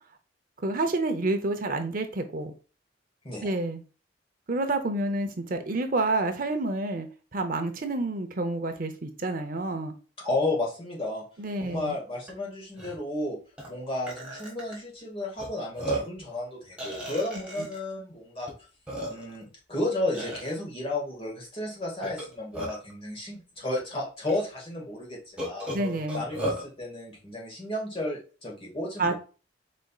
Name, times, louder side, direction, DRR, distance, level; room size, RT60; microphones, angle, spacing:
voice 1, 0.6-2.5 3.4-3.8 4.5-7.1 7.3-9.9 11.4-11.9 17.6-17.7 25.7-26.2 29.0-29.1, right 2 dB, 45° right, 6 dB, 0.7 m, -29 dB
voice 2, 10.2-11.2 11.6-13.4 13.6-18.5 19.1-25.7 26.1-29.1, left 2 dB, 30° left, -2 dB, 1.8 m, -33 dB
Burping eructation, 12.3-12.4 12.7-12.9 13.6-13.7 14.1-14.7 15.4-15.5 15.8-16.2 16.8-17.8 18.5-18.6 18.9-19.4 20.1-20.5 22.0-22.9 23.8-23.9 24.3-24.4 25.4-26.6, right 1 dB, 5° right, 1.7 m, -34 dB
5.0 x 4.3 x 2.3 m, 0.35 s
head